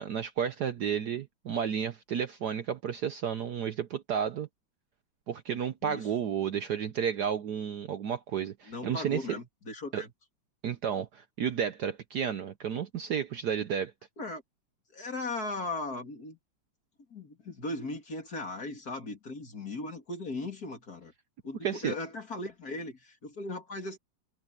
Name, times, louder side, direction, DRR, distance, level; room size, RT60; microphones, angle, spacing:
voice 1, 0.0-4.5 5.3-9.2 9.9-10.0 10.6-13.9 21.6-21.9, right 8 dB, 60° right, 1.2 m, -32 dB
voice 2, 8.7-10.1 14.2-14.4 14.9-16.4 17.1-21.1 21.4-24.0, left 2 dB, 45° left, 3.5 m, -38 dB
omnidirectional pair, 2.3 m